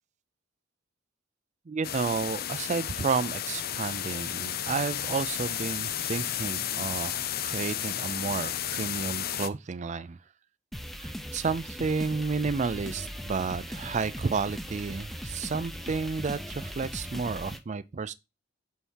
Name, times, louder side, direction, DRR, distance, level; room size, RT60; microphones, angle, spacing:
voice 1, 1.7-10.2 11.0-18.1, right 4 dB, 40° right, 0.4 m, -31 dB
sound 1, 1.8-9.5, left 10 dB, 50° left, 0.6 m, -33 dB
sound 2, 10.7-17.6, equal, ahead, 0.7 m, -39 dB
5.6 x 4.2 x 6.2 m
head